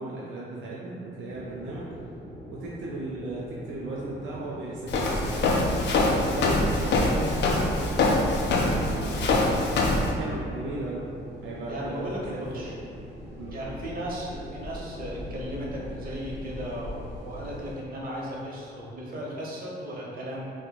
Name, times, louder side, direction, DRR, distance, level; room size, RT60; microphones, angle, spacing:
voice 1, 0.0-1.9 2.5-8.0 8.4-9.5 10.1-11.1 11.4-12.7 13.4-13.6, right 2 dB, 75° right, -5 dB, 0.5 m, -36 dB
sound 1, 1.3-17.8, equal, 35° left, 1.2 m, -42 dB
Walk footsteps, 4.9-10.1, left 2 dB, 60° left, 0.5 m, -24 dB
voice 2, 11.7-12.7 13.5-20.5, equal, 45° right, -4 dB, 0.8 m, -36 dB
4.3 x 2.1 x 2.2 m, 2.6 s
cardioid pair, 90°, 20 cm